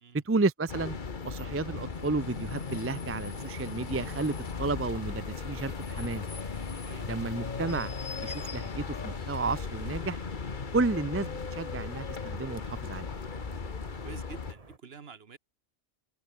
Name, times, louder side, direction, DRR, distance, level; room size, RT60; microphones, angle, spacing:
voice 1, 0.1-1.0 1.2-6.2 7.1-7.9 8.2-10.2 10.7-13.1, right 3 dB, 15° right, 0.5 m, -32 dB
sound 1, 0.7-14.5, left 5 dB, 45° left, 1.5 m, -37 dB
sound 2, 1.3-14.8, right 3 dB, 30° right, 1.9 m, -52 dB
voice 2, 14.0-15.4, right 6 dB, 60° right, 1.5 m, -48 dB
omnidirectional pair, 1.2 m